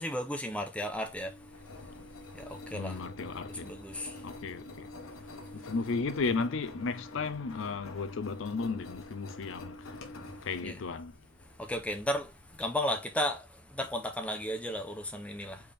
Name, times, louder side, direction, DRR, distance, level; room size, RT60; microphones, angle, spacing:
voice 1, 0.0-1.3 2.3-3.0 3.6-4.1 10.6-10.8 11.6-12.3 12.6-13.4 13.7-15.6, equal, 5° left, 0.6 m, -34 dB
Engine, 0.9-12.6, left 2 dB, 90° left, 1.1 m, -47 dB
voice 2, 2.7-3.7 4.2-4.9 5.5-9.8 10.5-11.1, left 4 dB, 70° left, 0.5 m, -34 dB
4.2 x 3.5 x 3.4 m
head